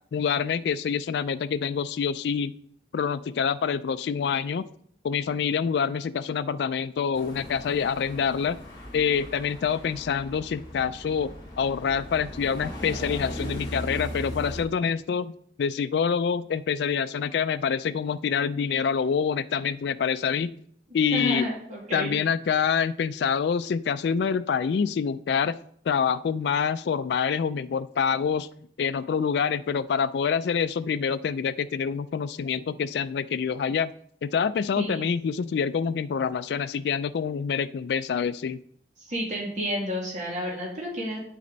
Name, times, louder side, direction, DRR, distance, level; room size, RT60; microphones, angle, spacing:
voice 1, 0.1-2.5 2.9-4.7 5.0-8.6 8.9-15.3 15.6-20.5 20.9-21.4 21.9-25.6 25.9-28.5 28.8-33.9 34.2-38.6, left 6 dB, 70° left, 12 dB, 0.3 m, -26 dB
sound 1, 7.1-14.6, equal, 25° left, 3.2 m, -38 dB
voice 2, 21.1-22.2 34.8-35.1 39.0-41.2, equal, 40° right, -3 dB, 2.2 m, -30 dB
8.5 x 8.4 x 4.0 m, 0.64 s
head